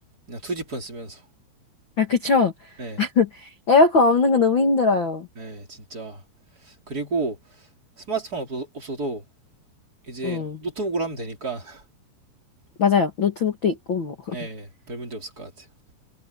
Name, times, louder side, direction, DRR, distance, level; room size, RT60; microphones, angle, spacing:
voice 1, 0.3-1.2 2.8-3.0 5.4-6.2 6.7-7.4 8.1-9.2 10.1-11.8 14.3-15.7, right 3 dB, 20° right, 4.2 m, -31 dB
voice 2, 2.0-2.5 3.0-5.3 10.2-10.6 12.8-14.4, left 4 dB, 70° left, 1.1 m, -20 dB
omnidirectional pair, 5.4 m